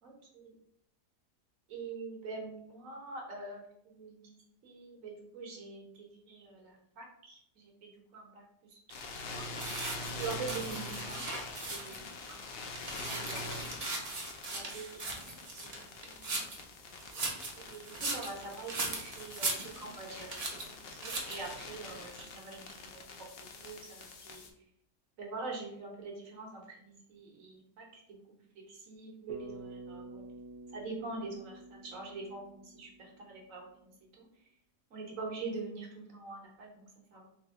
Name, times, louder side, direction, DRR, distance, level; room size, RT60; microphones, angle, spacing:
voice 1, 0.0-0.5 1.7-4.4 4.6-8.4 8.7-8.8 9.2-9.5 10.1-11.2 11.7-12.4 13.0-13.9 14.4-16.5 17.6-20.5 20.9-23.0 23.4-24.4 25.2-28.2 28.7-30.2 30.7-34.3 34.9-37.3, right 3 dB, 80° right, -1 dB, 1.5 m, -44 dB
sound 1, 8.9-24.5, left 3 dB, 60° left, 0.7 m, -45 dB
sound 2, 9.6-12.1 12.5-16.6 17.0-20.0 20.3-20.7 21.0-21.5, right 2 dB, 40° right, 0.6 m, -38 dB
Bass guitar, 29.3-33.7, right 2 dB, 60° right, 1.1 m, -50 dB
3.3 x 3.0 x 3.6 m, 0.73 s
omnidirectional pair, 1.4 m